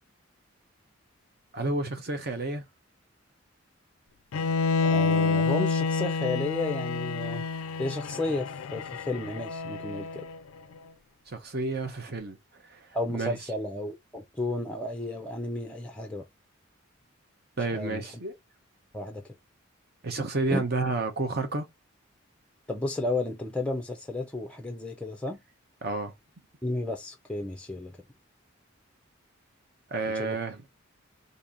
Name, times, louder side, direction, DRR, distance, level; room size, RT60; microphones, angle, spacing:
voice 1, 1.5-2.6 11.3-12.4 12.7-12.9 13.1-13.3 17.6-18.3 20.0-21.7 25.8-26.1 29.9-30.6, right 3 dB, 45° right, 0.8 m, -30 dB
Bowed string instrument, 4.3-10.4, left 4 dB, 80° left, 0.3 m, -28 dB
voice 2, 4.8-7.4 7.8-10.3 12.9-16.2 17.7-18.0 18.9-19.2 20.5-20.6 22.7-25.4 26.6-28.0 30.2-30.4, left 2 dB, 5° left, 0.4 m, -32 dB
2.9 x 2.6 x 3.8 m
head